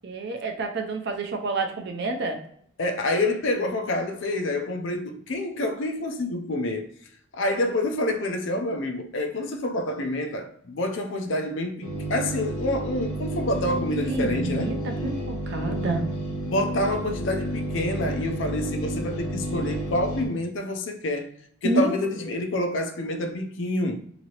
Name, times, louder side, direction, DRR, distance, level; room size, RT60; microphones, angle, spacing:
voice 1, 0.0-2.4 14.1-16.1 21.6-21.9, right 2 dB, 55° right, 0.5 m, -28 dB
voice 2, 2.8-6.9 7.3-14.7 16.4-21.3 21.6-23.9, left 1 dB, 60° left, 0.5 m, -27 dB
sound 1, 11.8-20.3, right 1 dB, 80° left, 1.0 m, -31 dB
2.9 x 2.7 x 2.9 m
head